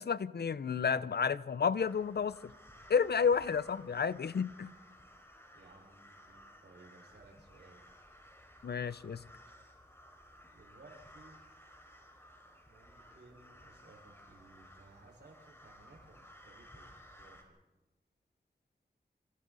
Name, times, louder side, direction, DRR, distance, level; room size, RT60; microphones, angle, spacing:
voice 1, 0.0-2.4 2.9-4.7 8.6-9.2, left 6 dB, 70° left, 0.7 m, -31 dB
sound 1, 1.8-17.4, equal, 15° left, 4.6 m, -57 dB
voice 2, 5.5-7.8 10.5-11.4 12.7-17.6, right 3 dB, 90° right, 5.1 m, -59 dB
27.0 x 26.0 x 4.1 m
wide cardioid pair, 60°, 17 cm